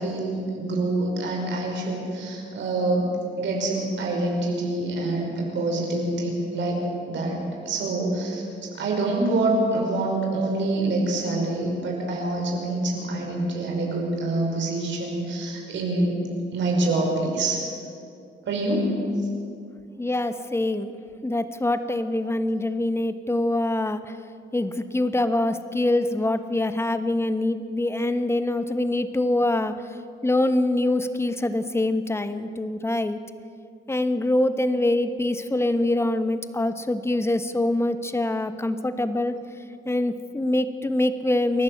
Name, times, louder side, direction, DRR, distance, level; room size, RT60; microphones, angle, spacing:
voice 1, 0.0-3.1 3.4-6.8 7.1-8.4 8.8-16.2 16.5-17.6 18.5-18.9, right 2 dB, 70° right, 0 dB, 5.4 m, -26 dB
voice 2, 20.0-20.9 21.2-24.0 24.5-29.7 30.2-33.2 33.9-39.4 39.8-41.6, left 1 dB, 15° left, 10 dB, 1.3 m, -24 dB
28.0 x 11.5 x 8.1 m, 2.5 s
cardioid pair, 90°, 20 cm